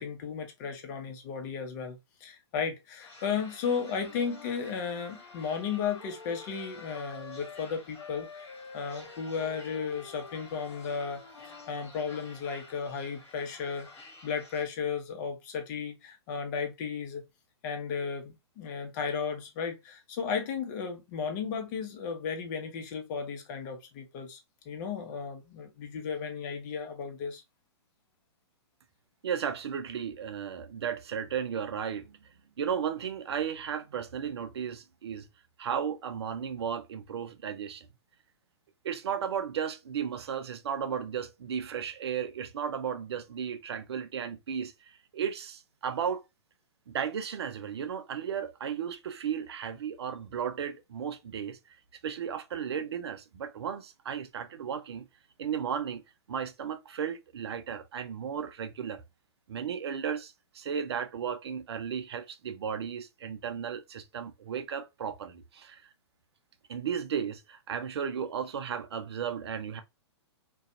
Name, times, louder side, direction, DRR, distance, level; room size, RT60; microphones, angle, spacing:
voice 1, 0.0-13.9 14.2-17.2 17.6-24.4 24.7-27.4, left 6 dB, 40° left, 0.8 m, -34 dB
sound 1, 3.0-14.7, left 3 dB, 20° left, 1.1 m, -52 dB
Wind instrument woodwind instrument, 4.0-7.7 8.0-11.8, left 4 dB, 80° left, 0.6 m, -48 dB
voice 2, 29.2-32.2 32.6-35.3 35.6-37.9 38.8-44.7 45.1-46.2 46.9-51.6 52.0-55.1 55.4-56.0 56.3-59.0 59.5-65.8 66.7-69.8, right 8 dB, 65° right, 0.5 m, -34 dB
2.5 x 2.3 x 2.6 m
hypercardioid pair, 120°, 15 cm